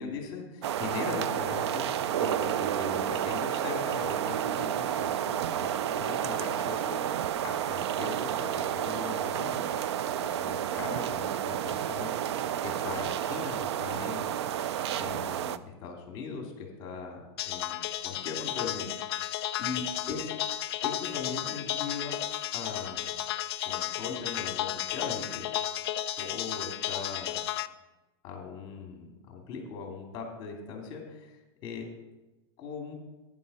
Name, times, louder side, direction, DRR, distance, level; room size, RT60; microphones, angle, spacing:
voice 1, 0.0-7.0 7.4-9.8 10.2-14.4 15.0-20.3 20.8-22.2 22.5-23.1 23.6-25.5 26.2-27.4 28.2-31.9 32.6-32.9, left 5 dB, 35° left, 1 dB, 2.6 m, -40 dB
sound 1, 0.6-15.6, right 10 dB, 85° right, 0.5 m, -31 dB
sound 2, 17.4-27.7, left 13 dB, 65° left, 0.5 m, -33 dB
10.5 x 9.7 x 4.2 m, 1.0 s
supercardioid pair, 155°, 14 cm